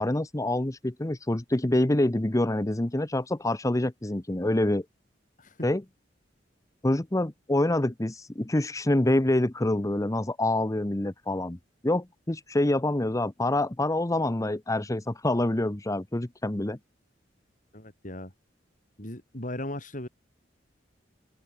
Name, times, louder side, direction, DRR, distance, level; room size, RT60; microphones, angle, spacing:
voice 1, 0.0-4.8 5.6-5.8 6.8-11.6 11.8-16.8, left 1 dB, 20° left, 0.8 m, -26 dB
voice 2, 17.7-18.3 19.0-20.1, left 1 dB, 45° left, 7.7 m, -37 dB
open air
head